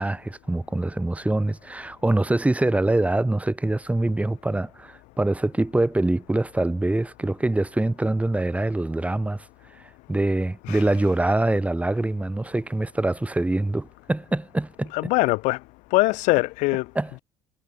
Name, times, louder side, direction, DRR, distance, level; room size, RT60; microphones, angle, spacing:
voice 1, 0.0-9.5 9.8-14.9 16.9-17.2, right 2 dB, 10° right, 1.0 m, -24 dB
voice 2, 10.6-11.1 14.9-15.6 15.9-16.9, left 24 dB, 65° left, 0.5 m, -22 dB
hypercardioid pair, 55°, 14 cm